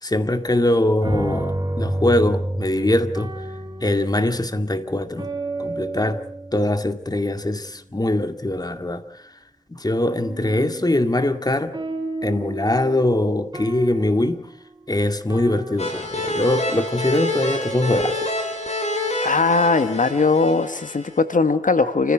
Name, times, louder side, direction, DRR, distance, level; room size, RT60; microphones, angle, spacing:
voice 1, 0.0-3.3 3.8-5.3 5.6-6.2 6.5-9.3 9.7-11.8 12.2-14.5 14.9-18.4, left 1 dB, 30° left, 2.1 m, -22 dB
sound 1, 1.0-7.5 10.1-16.5 17.4-18.0, right 1 dB, 30° right, 4.4 m, -31 dB
sound 2, 15.8-21.2, left 1 dB, 55° left, 6.2 m, -27 dB
voice 2, 19.2-22.1, left 3 dB, 80° left, 1.4 m, -19 dB
28.5 x 15.5 x 7.7 m
wide cardioid pair, 60°, 13 cm